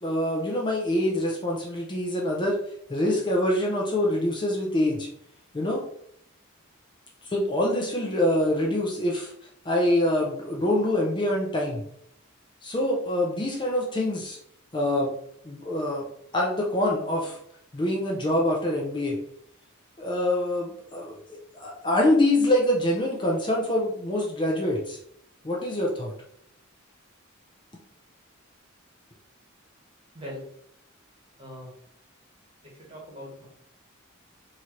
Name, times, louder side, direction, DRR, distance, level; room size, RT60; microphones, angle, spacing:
voice 1, 0.0-2.6 2.9-5.1 5.5-5.8 7.2-9.3 9.7-11.8 12.6-14.4 14.7-15.1 15.4-16.0 16.3-17.4 17.7-19.2 20.0-25.0 25.4-26.1, left 1 dB, 20° left, -2 dB, 0.5 m, -25 dB
voice 2, 31.4-31.7 32.6-33.5, equal, 25° right, -3 dB, 1.2 m, -41 dB
3.8 x 2.8 x 3.0 m, 0.71 s
head